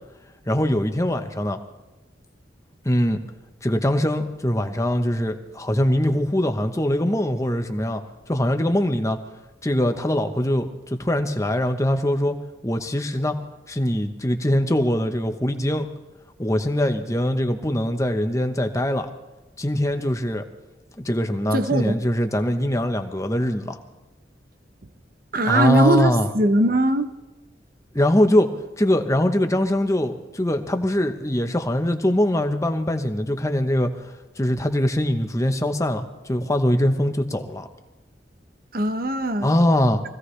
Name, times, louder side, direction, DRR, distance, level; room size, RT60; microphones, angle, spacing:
voice 1, 0.4-1.6 2.8-3.2 3.6-8.0 8.3-9.2 9.6-12.3 12.6-13.4 13.7-15.9 16.4-19.1 19.6-20.5 21.0-23.8 25.4-26.3 27.9-28.5 28.8-33.9 34.4-37.7 39.4-40.0, left 1 dB, 15° left, 6 dB, 1.0 m, -22 dB
voice 2, 21.5-22.0 25.3-27.1 38.7-39.5, right 1 dB, 50° right, 9 dB, 0.9 m, -20 dB
24.0 x 16.0 x 3.3 m, 1.1 s
head